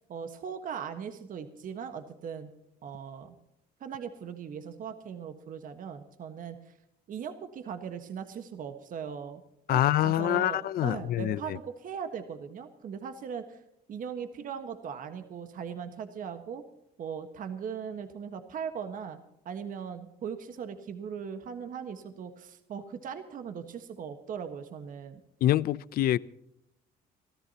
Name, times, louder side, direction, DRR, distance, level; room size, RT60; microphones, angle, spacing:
voice 1, 0.0-2.5 2.8-3.4 3.8-6.7 7.1-9.4 9.7-13.6 13.9-16.6 17.0-19.2 19.4-25.2, right 7 dB, 55° right, 1.5 m, -39 dB
voice 2, 9.7-11.4 25.4-26.2, left 13 dB, 60° left, 0.6 m, -25 dB
26.5 x 13.5 x 2.9 m
cardioid pair, 110°, 17 cm